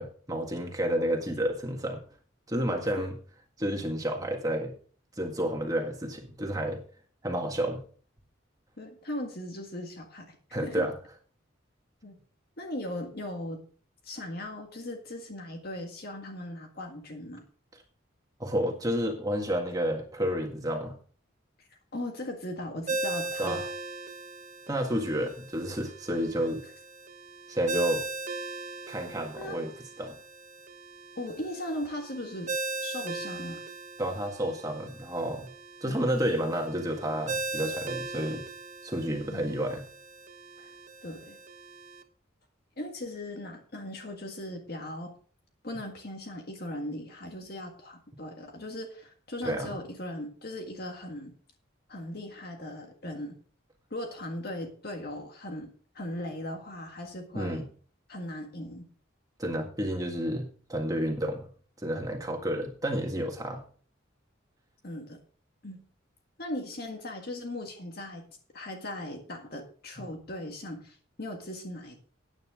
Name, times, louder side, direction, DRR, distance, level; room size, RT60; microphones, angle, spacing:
voice 1, 0.0-2.0 2.5-3.1 3.6-4.7 5.2-6.8 7.2-7.8 10.5-10.9 18.4-20.9 23.4-23.6 24.7-26.6 27.5-28.0 28.9-29.7 30.0-30.1 34.0-35.5 35.8-38.4 38.8-39.8 40.6-40.7 49.4-49.8 57.3-57.6 59.4-61.5 61.8-63.6, equal, 20° right, 2 dB, 1.7 m, -30 dB
voice 2, 8.8-10.9 12.0-12.1 12.6-13.6 14.0-17.4 21.6-23.6 29.4-29.6 31.2-32.5 32.8-33.6 39.3-39.5 41.0-41.4 42.8-45.1 45.6-51.3 51.9-53.4 53.9-57.7 58.1-58.9 64.8-65.2 65.6-65.8 66.4-68.2 68.5-72.0, left 1 dB, 50° left, 3 dB, 1.7 m, -38 dB
Ringtone, 22.9-42.0, right 3 dB, 40° right, 1.1 m, -39 dB
13.5 x 9.4 x 3.7 m, 0.43 s
head